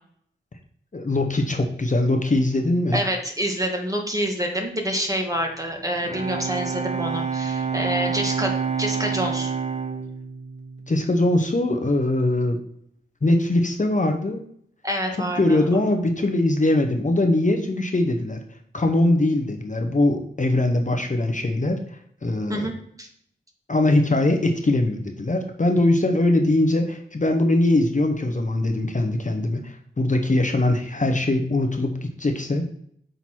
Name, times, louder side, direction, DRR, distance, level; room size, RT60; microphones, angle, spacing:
voice 1, 0.9-3.0 10.9-12.6 13.2-14.4 15.4-18.4 18.7-21.8 22.2-22.7 23.7-32.6, left 2 dB, 40° left, 4 dB, 0.9 m, -21 dB
voice 2, 2.9-8.5 8.8-9.5 14.8-15.6 22.5-23.1, equal, 15° right, 1 dB, 1.5 m, -27 dB
Bowed string instrument, 5.8-11.6, right 6 dB, 35° right, 0.8 m, -28 dB
5.9 x 3.9 x 4.5 m, 0.67 s
cardioid pair, 45°, 21 cm